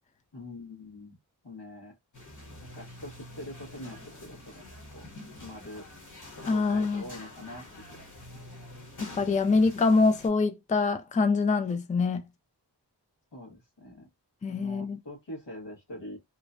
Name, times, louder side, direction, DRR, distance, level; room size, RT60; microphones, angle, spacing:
voice 1, 0.3-1.2 1.4-1.9 2.6-4.6 4.9-5.1 5.4-5.9 6.5-8.0 13.3-14.1 14.5-16.2, left 1 dB, 90° left, 1.4 m, -44 dB
sound 1, 2.1-10.3, left 1 dB, 45° left, 1.1 m, -47 dB
voice 2, 6.5-7.1 9.0-12.2 14.4-15.0, left 4 dB, 20° left, 0.4 m, -25 dB
3.0 x 2.2 x 2.5 m
wide cardioid pair, 40°, 42 cm